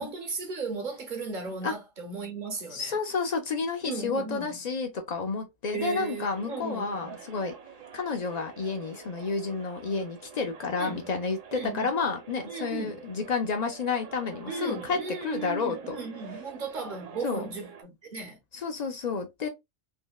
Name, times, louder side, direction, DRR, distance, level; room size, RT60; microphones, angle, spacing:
voice 1, 0.0-3.0 3.8-4.6 5.7-7.2 10.8-11.1 11.5-11.9 12.5-13.0 14.5-18.4, right 4 dB, 45° right, 0.7 m, -36 dB
voice 2, 2.7-7.5 7.9-15.9 17.2-17.5 18.5-19.5, left 4 dB, 60° left, 0.4 m, -30 dB
sound 1, 5.7-17.8, right 6 dB, 65° right, 1.2 m, -47 dB
3.5 x 2.1 x 2.2 m
omnidirectional pair, 1.4 m